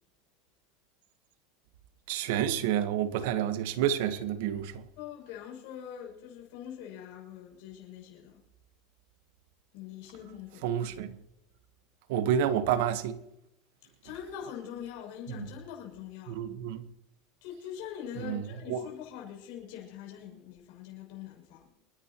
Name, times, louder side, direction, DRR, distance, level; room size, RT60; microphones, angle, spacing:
voice 1, 2.1-4.7 10.6-11.1 12.1-13.2 16.3-16.8 18.2-18.4 18.7-18.8, right 9 dB, 70° right, 1.2 m, -29 dB
voice 2, 5.0-8.4 9.7-10.8 14.0-16.4 17.4-21.7, left 9 dB, 60° left, 6.8 m, -43 dB
28.5 x 10.5 x 3.0 m
supercardioid pair, 145°, 0 cm